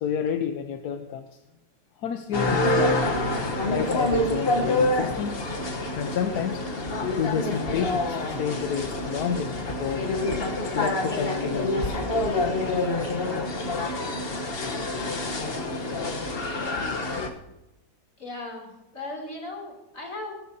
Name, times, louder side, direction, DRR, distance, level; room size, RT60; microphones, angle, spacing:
voice 1, 0.0-1.3 2.0-3.0 3.7-5.4 6.0-6.6 7.2-10.1 10.7-12.0 12.5-12.6, left 7 dB, 85° left, 7 dB, 1.3 m, -30 dB
sound 1, 2.3-17.3, left 2 dB, 40° left, 1.2 m, -27 dB
voice 2, 18.2-20.3, left 2 dB, 55° left, -1 dB, 3.5 m, -37 dB
20.0 x 12.5 x 2.7 m, 1.0 s
omnidirectional pair, 1.6 m